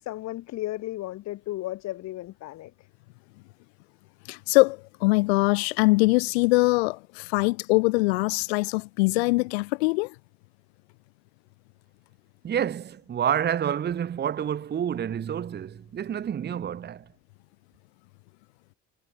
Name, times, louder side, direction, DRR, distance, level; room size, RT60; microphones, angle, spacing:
voice 1, 0.0-2.9, left 16 dB, 60° left, 1.7 m, -34 dB
voice 2, 4.3-10.1, left 25 dB, 80° left, 0.8 m, -22 dB
voice 3, 12.4-17.1, right 9 dB, 35° right, 0.9 m, -28 dB
hypercardioid pair, 65°, 31 cm